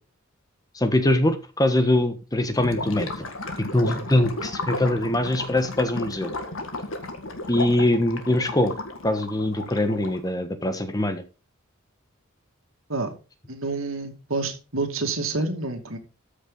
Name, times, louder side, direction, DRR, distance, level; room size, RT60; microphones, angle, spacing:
voice 1, 0.7-3.3 3.6-6.3 7.5-8.7 9.0-11.2, left 1 dB, 20° left, 9 dB, 1.3 m, -23 dB
Gurgling / Liquid, 2.5-10.3, left 2 dB, 75° left, 1.9 m, -34 dB
voice 2, 13.5-16.0, right 3 dB, 80° right, 5 dB, 2.5 m, -28 dB
13.5 x 6.8 x 4.0 m, 0.32 s
head